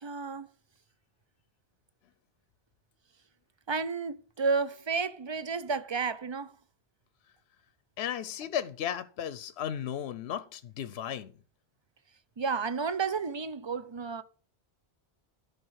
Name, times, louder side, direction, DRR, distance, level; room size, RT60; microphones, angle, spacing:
voice 1, 0.0-0.5 3.7-6.5 12.4-14.2, right 5 dB, 35° right, 0.5 m, -31 dB
voice 2, 8.0-11.3, left 9 dB, 70° left, 0.9 m, -35 dB
11.0 x 4.9 x 6.3 m
omnidirectional pair, 1.1 m